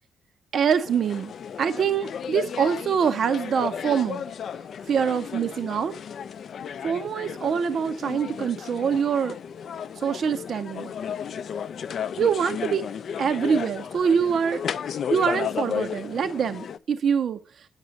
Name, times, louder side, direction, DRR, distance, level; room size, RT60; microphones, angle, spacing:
voice 1, 0.5-1.3 1.6-4.2 4.9-5.9 6.8-9.4 10.0-10.9 12.2-12.9 13.2-14.6 15.1-17.7, right 7 dB, 45° right, 0.6 m, -24 dB
sound 1, 0.9-16.8, left 7 dB, 50° left, 0.4 m, -34 dB
8.9 x 6.1 x 4.0 m
cardioid pair, 165°, 0 cm